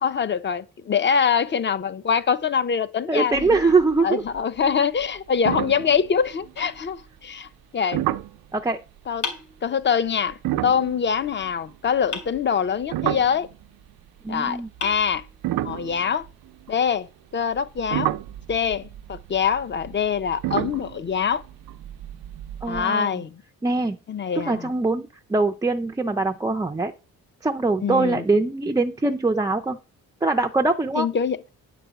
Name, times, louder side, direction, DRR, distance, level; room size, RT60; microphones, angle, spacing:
voice 1, 0.0-3.4 4.0-8.1 9.1-9.3 9.6-10.4 10.6-13.5 14.3-15.2 15.6-16.3 16.7-17.1 17.3-18.1 18.5-21.4 22.6-23.4 24.1-24.7 27.8-28.2 30.9-31.4, left 7 dB, 30° left, 0.7 m, -24 dB
voice 2, 3.1-4.2 8.5-8.8 14.2-14.7 22.6-23.2 23.6-24.0 24.4-26.9 27.4-29.8 30.2-31.1, right 3 dB, 10° right, 0.4 m, -22 dB
sound 1, 3.3-4.0 4.3-4.7 5.0-5.1 5.4-6.8 7.9-8.4 10.3-13.9 14.7-16.9 17.5-22.8, right 14 dB, 90° right, 0.6 m, -31 dB
sound 2, 6.6-7.6 9.2-10.2 12.1-13.0 14.2-14.3 14.8-15.8, left 5 dB, 55° left, 3.0 m, -37 dB
9.9 x 5.0 x 8.0 m
cardioid pair, 165°, 36 cm